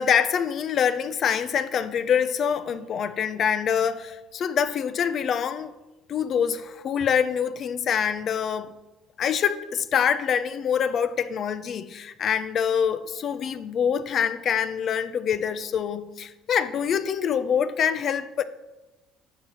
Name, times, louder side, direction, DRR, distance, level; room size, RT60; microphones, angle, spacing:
voice 1, 0.0-5.7 6.1-8.7 9.2-18.4, left 7 dB, 50° left, 0.9 m, -25 dB
12.0 x 7.6 x 6.6 m
supercardioid pair, 100°, 0 cm